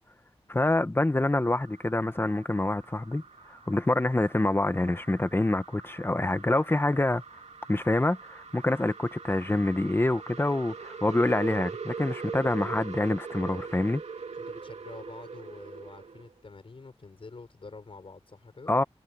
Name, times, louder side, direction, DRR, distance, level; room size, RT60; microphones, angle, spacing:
voice 1, 0.5-3.2 3.7-7.2 7.7-14.0 18.7-18.8, left 2 dB, 20° left, 1.2 m, -26 dB
sound 1, 1.2-16.3, right 5 dB, 90° right, 2.4 m, -42 dB
voice 2, 14.4-18.7, left 3 dB, 55° left, 6.2 m, -47 dB
wide cardioid pair, 100°, 11 cm